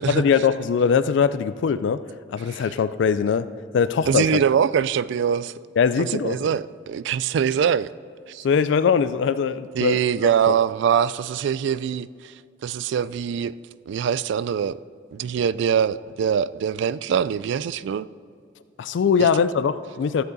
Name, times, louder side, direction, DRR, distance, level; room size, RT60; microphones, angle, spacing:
voice 1, 0.1-2.0 2.3-3.5 3.7-4.2 5.8-6.5 8.4-10.0 10.5-10.6 18.8-20.2, left 6 dB, 65° left, 0.3 m, -21 dB
voice 2, 4.1-5.5 6.1-7.9 8.3-8.4 9.8-12.3 12.6-13.5 13.9-14.8 15.1-18.1 19.2-19.3, right 8 dB, 65° right, 0.3 m, -23 dB
14.5 x 7.9 x 3.9 m
head